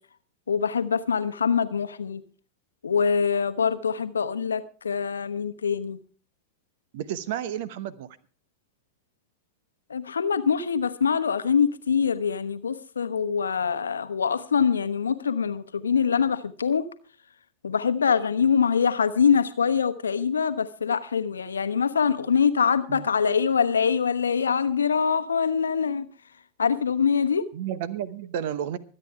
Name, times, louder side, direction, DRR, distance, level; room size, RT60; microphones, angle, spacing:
voice 1, 0.5-2.2 2.8-6.0 9.9-16.9 17.6-26.1 26.6-27.5, left 6 dB, 70° left, 11 dB, 1.0 m, -24 dB
voice 2, 6.9-8.1 22.9-23.1 27.5-28.8, right 10 dB, 50° right, 17 dB, 0.9 m, -31 dB
24.5 x 9.0 x 3.4 m, 0.40 s
figure-of-eight pair, 90°, 0 cm